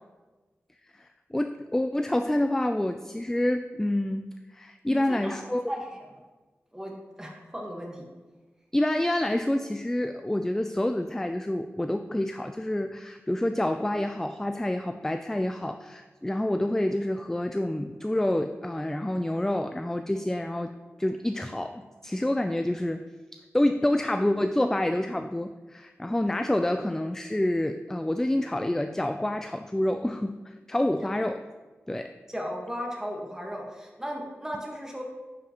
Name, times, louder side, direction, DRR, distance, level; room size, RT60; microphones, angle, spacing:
voice 1, 0.9-5.6 8.7-20.7 21.0-23.0 23.5-31.4 31.9-32.1, left 1 dB, 10° left, 7 dB, 0.3 m, -28 dB
voice 2, 4.9-5.4 5.7-5.9 6.7-8.0 31.0-31.1 32.3-35.0, equal, 10° right, -1 dB, 1.5 m, -36 dB
11.0 x 4.8 x 3.0 m, 1.3 s
wide cardioid pair, 75°, 5 cm